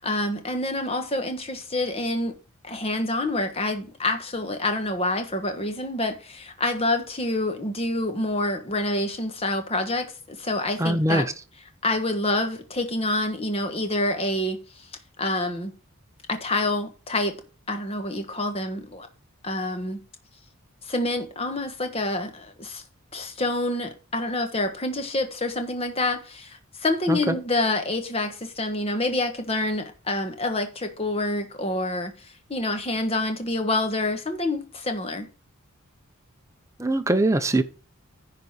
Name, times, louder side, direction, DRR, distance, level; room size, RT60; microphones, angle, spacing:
voice 1, 0.0-2.4 2.6-11.2 11.8-14.9 15.2-15.7 16.3-17.4 17.7-19.1 19.4-20.0 20.8-22.8 23.1-35.3, left 2 dB, 25° left, 1.4 m, -27 dB
voice 2, 10.8-11.3 27.1-27.4 36.8-37.6, right 1 dB, 15° right, 0.7 m, -22 dB
10.5 x 4.1 x 6.5 m
head